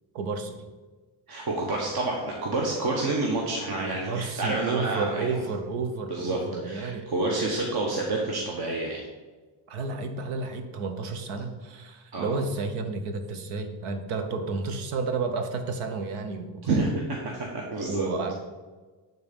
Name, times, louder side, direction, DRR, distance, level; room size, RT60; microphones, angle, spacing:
voice 1, 0.1-0.6 3.9-7.1 9.7-16.9 17.8-18.4, right 4 dB, 90° right, 7 dB, 1.1 m, -31 dB
voice 2, 1.3-5.4 6.1-9.0 12.1-12.3 16.6-18.1, right 2 dB, 50° right, -1 dB, 1.3 m, -29 dB
9.2 x 3.9 x 5.3 m, 1.3 s
cardioid pair, 105°, 48 cm